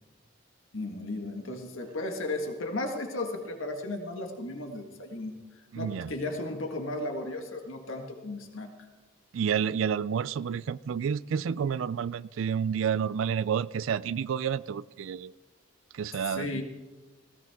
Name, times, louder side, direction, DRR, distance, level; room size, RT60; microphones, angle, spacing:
voice 1, 0.7-5.4 5.8-8.7 16.2-16.6, left 2 dB, 90° left, 1.7 m, -35 dB
voice 2, 5.7-6.1 9.3-15.3 15.9-16.6, right 7 dB, 80° right, 0.4 m, -30 dB
19.0 x 16.5 x 3.6 m
head